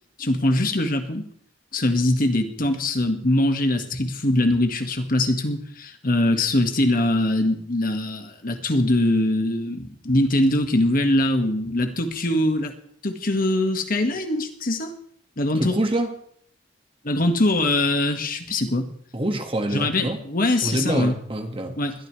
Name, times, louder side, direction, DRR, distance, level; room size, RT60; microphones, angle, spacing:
voice 1, 0.2-1.3 1.7-12.7 13.0-14.9 15.4-15.8 17.0-18.9 19.7-21.1 21.8-21.9, left 1 dB, 50° left, 6 dB, 1.7 m, -22 dB
voice 2, 15.6-16.1 19.1-20.2 20.6-21.8, right 1 dB, 30° right, 5 dB, 1.8 m, -26 dB
21.0 x 13.5 x 3.3 m, 0.63 s
head